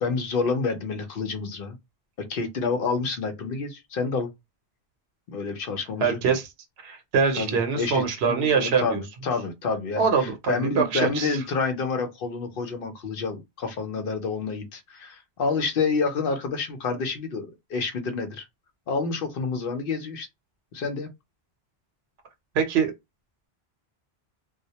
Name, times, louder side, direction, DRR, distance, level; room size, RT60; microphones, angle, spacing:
voice 1, 0.0-1.8 2.2-4.3 5.3-6.4 7.3-18.5 18.9-20.3 20.7-21.1, left 4 dB, 65° left, 0.7 m, -28 dB
voice 2, 6.0-6.5 6.8-9.0 10.0-11.4 22.5-22.9, right 6 dB, 80° right, 0.9 m, -24 dB
2.2 x 2.1 x 2.8 m
omnidirectional pair, 1.1 m